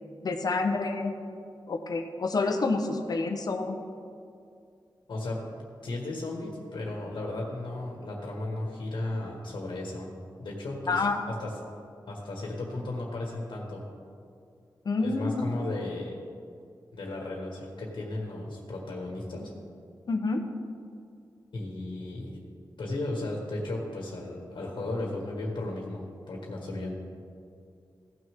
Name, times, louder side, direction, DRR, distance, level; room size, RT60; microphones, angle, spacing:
voice 1, 0.2-1.2 1.7-3.8 10.9-11.2 14.8-15.4 20.1-20.4, left 3 dB, 55° left, 5 dB, 0.9 m, -28 dB
voice 2, 5.1-5.4 5.8-10.1 10.4-11.5 12.1-13.8 15.0-16.1 16.9-19.5 21.5-22.4 22.8-26.9, left 2 dB, 80° left, -1 dB, 1.6 m, -35 dB
16.0 x 6.4 x 3.6 m, 2.4 s
wide cardioid pair, 160°, 8 cm